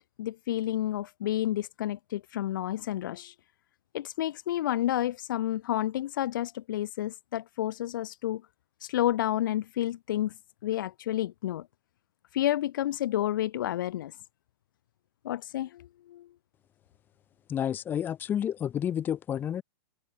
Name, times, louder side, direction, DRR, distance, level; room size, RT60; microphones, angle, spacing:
voice 1, 0.0-3.3 3.9-8.4 8.8-10.3 10.6-11.7 12.3-14.1 15.2-16.3, left 13 dB, 55° left, 7.7 m, -30 dB
voice 2, 17.5-19.6, left 9 dB, 15° left, 7.8 m, -30 dB
supercardioid pair, 170°, 13 cm